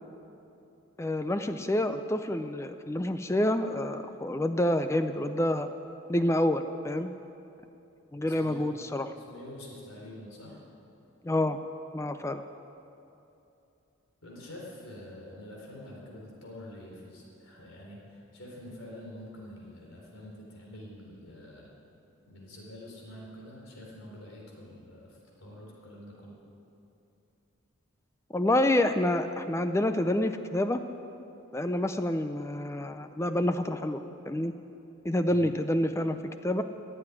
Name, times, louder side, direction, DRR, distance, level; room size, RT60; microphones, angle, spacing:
voice 1, 1.0-5.7 6.1-7.1 8.1-9.1 11.2-11.6 11.9-12.4 28.3-30.8 31.5-34.0 34.3-34.5 35.0-36.2 36.4-36.6, left 1 dB, 15° left, 9 dB, 0.4 m, -28 dB
voice 2, 8.2-8.7 9.2-10.6 14.2-21.7 22.2-26.3 35.2-35.5, left 1 dB, 80° left, -2 dB, 4.1 m, -46 dB
15.5 x 7.9 x 9.9 m, 2.9 s
head